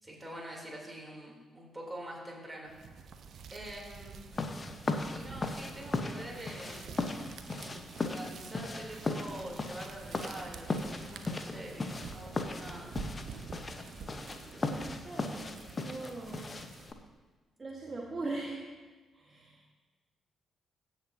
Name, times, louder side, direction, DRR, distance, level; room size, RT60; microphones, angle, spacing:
voice 1, 0.0-2.9 3.5-4.3 5.1-7.0 8.0-12.9, right 1 dB, 15° right, -2 dB, 3.1 m, -45 dB
sound 1, 2.6-17.1, right 5 dB, 55° right, 0.6 m, -48 dB
sound 2, 4.3-16.9, left 3 dB, 35° left, 0.9 m, -37 dB
voice 2, 7.5-8.0 14.2-16.7 17.6-18.7 19.1-19.8, right 2 dB, 35° right, 0 dB, 1.2 m, -42 dB
16.0 x 6.2 x 2.7 m, 1.3 s
figure-of-eight pair, 40°, 0 cm